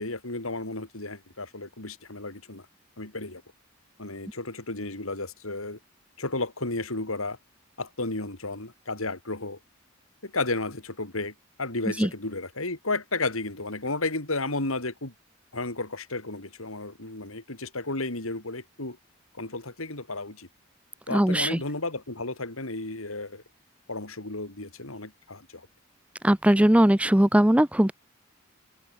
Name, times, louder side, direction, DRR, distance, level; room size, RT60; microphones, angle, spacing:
voice 1, 0.0-2.7 3.0-3.4 4.0-5.8 6.2-7.4 7.8-9.6 10.2-15.1 15.5-19.0 19.3-20.5 21.1-23.4 23.9-25.7, left 2 dB, 85° left, 4.4 m, -33 dB
voice 2, 21.1-21.6 26.2-27.9, right 1 dB, 5° right, 0.6 m, -20 dB
head